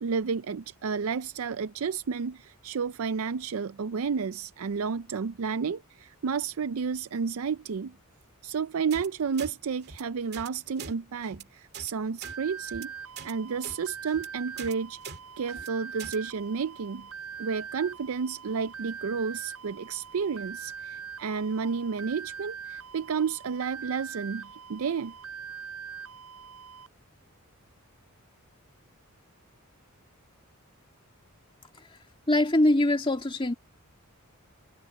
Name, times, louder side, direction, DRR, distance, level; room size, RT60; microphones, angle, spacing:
voice 1, 0.0-8.0 8.4-12.9 13.2-15.0 15.4-17.1 17.4-25.1, right 5 dB, 70° right, 0.5 m, -31 dB
sound 1, 8.9-9.1 9.4-9.5 9.8-10.0 10.3-10.5 10.8-10.9 11.2-11.4 11.7-11.9 12.2-12.4 12.7-12.9 13.2-13.3 13.6-13.8 14.1-14.3 14.6-14.7 15.0-15.2 15.5-15.7 16.0-16.2, right 6 dB, 50° right, 2.3 m, -42 dB
sound 2, 12.2-26.9, right 6 dB, 85° right, 8.0 m, -42 dB
voice 2, 32.3-33.5, left 1 dB, 25° left, 2.2 m, -23 dB
head